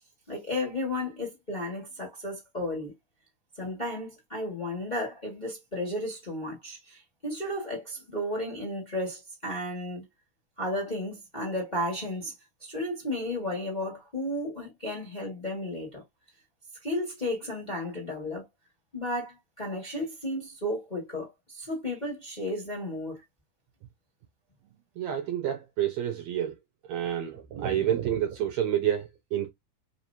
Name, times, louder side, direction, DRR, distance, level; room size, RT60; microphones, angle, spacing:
voice 1, 0.3-2.9 3.5-10.0 10.6-12.3 12.6-16.0 16.8-18.5 18.9-23.2, left 1 dB, 20° left, 1.4 m, -33 dB
voice 2, 25.0-26.5 26.9-29.5, right 10 dB, 75° right, 1.7 m, -29 dB
4.9 x 2.9 x 2.7 m
omnidirectional pair, 3.7 m